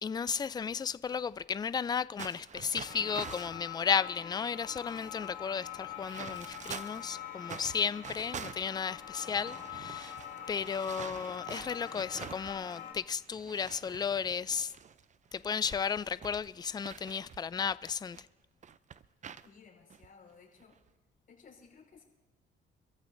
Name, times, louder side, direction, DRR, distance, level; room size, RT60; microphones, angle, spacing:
voice 1, 0.0-10.2 10.5-14.7 15.3-18.2, left 6 dB, 20° left, 0.3 m, -34 dB
sound 1, 2.2-3.6 4.3-4.4 4.6-7.1 7.4-12.9 13.2-18.2 18.6-19.5 19.9-20.1 20.6-20.9, right 7 dB, 40° right, 0.5 m, -47 dB
sound 2, 2.8-12.9, left 10 dB, 70° left, 3.0 m, -44 dB
voice 2, 19.4-20.8 21.3-22.0, left 5 dB, 45° left, 5.1 m, -57 dB
26.0 x 14.5 x 2.6 m
cardioid pair, 90°, 20 cm